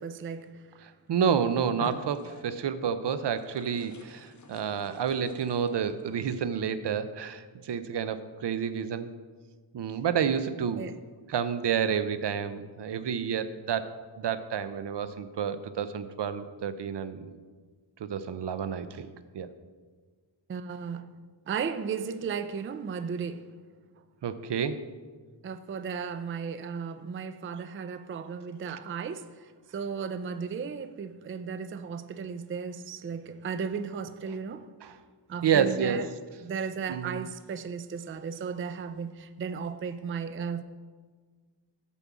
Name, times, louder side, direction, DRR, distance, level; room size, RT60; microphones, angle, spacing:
voice 1, 0.0-0.6 10.8-11.0 20.5-21.1 21.5-23.5 25.4-34.7 35.3-36.1 36.4-40.6, right 6 dB, 30° right, 0.4 m, -35 dB
voice 2, 0.8-9.1 9.7-10.8 11.3-17.3 18.0-19.1 19.3-19.5 24.2-24.8 34.8-35.0 35.4-36.0 36.9-37.2, right 7 dB, 70° right, 0.7 m, -29 dB
sound 1, 1.1-1.3 1.7-2.7 3.3-6.1, left 2 dB, 40° left, 1.1 m, -46 dB
8.3 x 5.4 x 7.2 m
wide cardioid pair, 100°, 44 cm